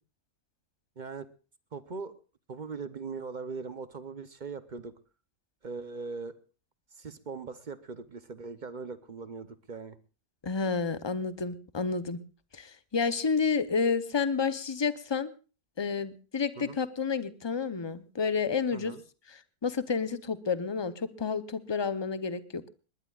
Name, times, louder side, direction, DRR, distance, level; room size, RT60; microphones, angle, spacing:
voice 1, 1.0-1.3 1.7-2.1 2.5-4.9 5.6-6.3 6.9-10.0 16.6-16.8 18.7-19.0, right 4 dB, 45° right, 13 dB, 0.6 m, -40 dB
voice 2, 10.4-12.2 12.5-15.3 15.8-18.9 19.3-22.7, left 5 dB, 35° left, 13 dB, 0.4 m, -30 dB
20.5 x 19.5 x 2.4 m, 0.34 s
omnidirectional pair, 1.6 m